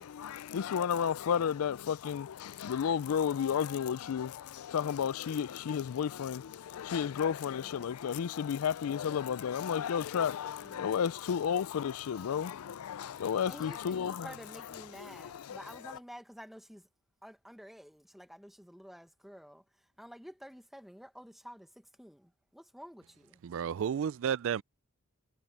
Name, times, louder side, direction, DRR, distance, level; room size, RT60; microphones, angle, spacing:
voice 1, 0.0-16.0, left 8 dB, 80° left, 0.4 m, -33 dB
voice 2, 7.5-7.9 10.6-10.9 13.4-16.9 17.2-19.6 20.0-23.4, equal, ahead, 1.3 m, -50 dB
voice 3, 23.4-24.6, right 8 dB, 65° right, 0.3 m, -32 dB
head